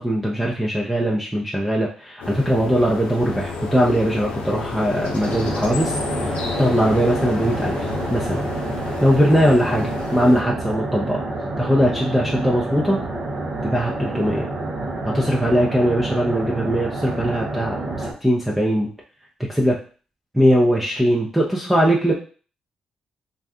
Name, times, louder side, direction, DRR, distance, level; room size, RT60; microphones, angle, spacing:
voice 1, 0.0-7.9 8.1-8.5 9.0-11.2 11.6-13.0 13.6-14.5 15.0-18.9 19.5-19.8 20.3-22.1, equal, 5° right, -3 dB, 0.7 m, -20 dB
sound 1, 2.2-10.4, left 4 dB, 90° left, 0.6 m, -30 dB
sound 2, 5.2-18.1, right 2 dB, 55° right, 0.9 m, -28 dB
2.6 x 2.3 x 3.5 m, 0.39 s
cardioid pair, 65°, 2 cm